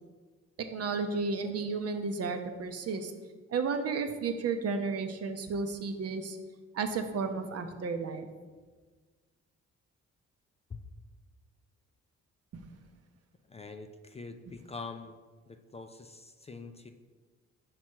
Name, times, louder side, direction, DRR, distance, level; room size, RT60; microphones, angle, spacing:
voice 1, 0.7-3.1 3.5-6.4 6.7-8.3 12.5-12.6, right 4 dB, 55° right, 7 dB, 0.7 m, -33 dB
voice 2, 13.5-15.2 15.5-16.9, left 4 dB, 20° left, 7 dB, 0.4 m, -44 dB
5.9 x 4.7 x 4.5 m, 1.4 s
cardioid pair, 90°, 30 cm